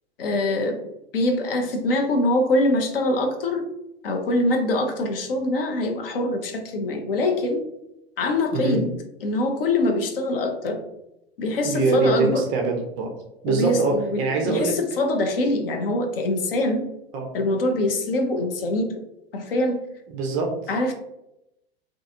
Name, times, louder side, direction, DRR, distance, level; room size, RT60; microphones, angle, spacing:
voice 1, 0.2-0.9 1.1-3.7 4.0-7.7 8.2-8.9 9.2-10.8 11.4-12.4 13.5-16.9 17.3-19.0 19.3-19.8 20.7-20.9, left 1 dB, 60° left, 4 dB, 0.5 m, -24 dB
voice 2, 11.6-13.1 13.4-14.8 17.1-17.3 20.1-20.5, right 3 dB, 25° right, 1 dB, 0.3 m, -23 dB
2.5 x 2.3 x 2.6 m, 0.86 s
figure-of-eight pair, 90°, 32 cm